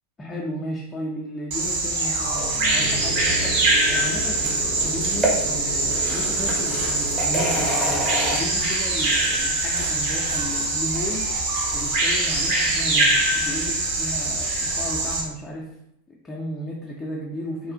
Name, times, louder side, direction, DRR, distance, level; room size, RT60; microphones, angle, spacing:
voice 1, 0.2-7.8 8.3-11.3 11.7-15.8 16.1-17.7, left 1 dB, 15° left, -3 dB, 0.4 m, -34 dB
Bird vocalization bird call bird song, 1.5-15.2, right 2 dB, 50° right, 0.8 m, -23 dB
sound 1, 1.6-8.9, right 3 dB, 65° right, 0.4 m, -39 dB
sound 2, 2.8-8.4, right 1 dB, 15° right, 0.7 m, -29 dB
3.1 x 2.4 x 2.5 m, 0.80 s
figure-of-eight pair, 90°, 0 cm